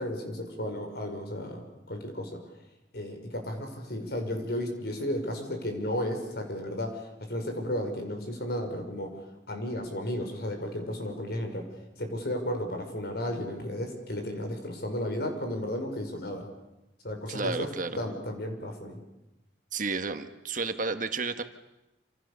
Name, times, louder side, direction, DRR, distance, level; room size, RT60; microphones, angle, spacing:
voice 1, 0.0-2.4 2.9-9.1 9.5-11.6 12.0-16.5 17.0-17.7 17.9-19.0, left 1 dB, 60° left, 4 dB, 5.8 m, -33 dB
voice 2, 17.3-17.9 19.7-21.4, right 4 dB, 45° right, 8 dB, 1.6 m, -31 dB
27.5 x 27.0 x 7.0 m, 0.97 s
head